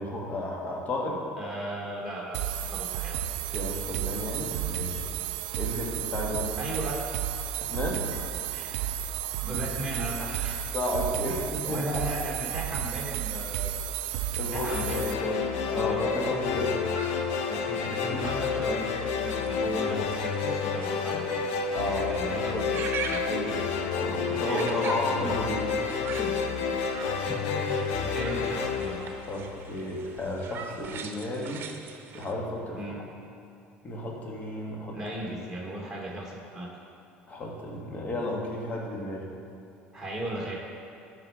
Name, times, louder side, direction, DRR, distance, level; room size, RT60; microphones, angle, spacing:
voice 1, 0.0-1.2 3.5-5.0 5.6-6.5 7.6-8.0 10.7-11.8 14.4-14.7 15.7-16.8 21.7-22.7 23.2-23.6 24.0-25.7 26.2-26.4 29.3-31.7 32.1-32.8 33.8-35.0 37.3-39.3, left 1 dB, 35° left, -2 dB, 2.2 m, -33 dB
voice 2, 1.4-2.4 2.7-3.2 6.6-7.0 8.1-8.2 8.5-8.7 9.4-10.6 11.3-13.8 14.5-16.1 17.5-21.4 21.9-23.2 24.3-25.3 27.2-29.0 32.8-33.0 34.9-36.7 39.9-40.6, right 1 dB, 5° right, -4 dB, 2.3 m, -36 dB
sound 1, 2.3-15.1, right 10 dB, 75° right, 0.4 m, -32 dB
sound 2, 14.6-29.9, left 6 dB, 75° left, 0.7 m, -30 dB
sound 3, 16.4-32.3, right 5 dB, 50° right, 0.8 m, -43 dB
12.5 x 4.8 x 5.0 m, 2.7 s
hypercardioid pair, 75°, 5 cm